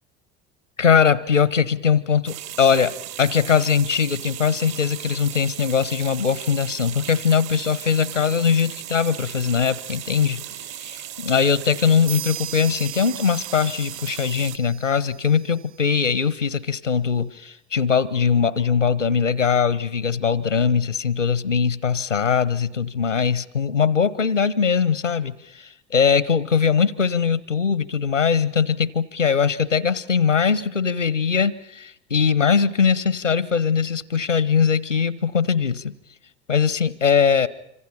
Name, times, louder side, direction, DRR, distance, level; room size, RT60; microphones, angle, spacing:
voice 1, 0.8-10.4 10.8-35.9 36.5-37.5, left 6 dB, 85° left, 19 dB, 1.0 m, -21 dB
sound 1, 2.3-14.6, right 12 dB, 45° right, 0.9 m, -36 dB
sound 2, 12.1-15.7, right 14 dB, 75° right, 4.5 m, -38 dB
26.0 x 26.0 x 5.7 m, 0.76 s
figure-of-eight pair, 65°, 36 cm